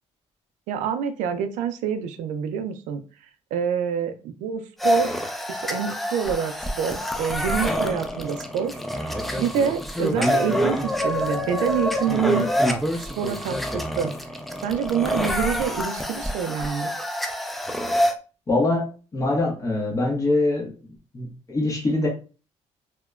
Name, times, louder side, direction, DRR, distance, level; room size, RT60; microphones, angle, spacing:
voice 1, 0.7-3.0 3.5-8.7 9.3-12.5 13.0-14.1 14.6-16.9, right 7 dB, 85° right, 10 dB, 0.4 m, -27 dB
sound 1, 4.8-18.1, equal, ahead, 0.3 m, -26 dB
voice 2, 18.5-20.7 21.1-22.1, left 2 dB, 25° left, -2 dB, 1.0 m, -23 dB
2.8 x 2.1 x 2.3 m, 0.35 s
cardioid pair, 115°, 12 cm